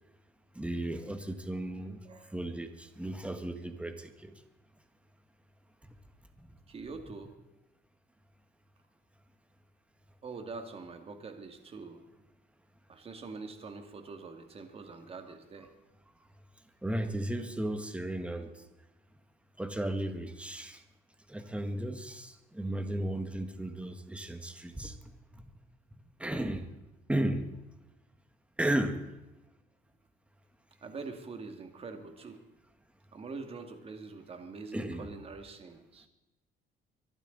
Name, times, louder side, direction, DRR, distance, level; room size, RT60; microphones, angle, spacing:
voice 1, 0.5-2.0 2.3-4.3 16.8-18.5 19.6-20.8 21.3-24.9 26.2-26.6 27.1-27.5 28.6-29.0 34.7-35.1, right 1 dB, 5° right, 7 dB, 1.6 m, -34 dB
voice 2, 6.7-7.3 10.2-12.1 12.9-15.7 30.8-32.4 33.1-36.1, right 4 dB, 35° right, 5 dB, 2.3 m, -44 dB
24.5 x 12.0 x 4.1 m, 0.96 s
cardioid pair, 110°, 17 cm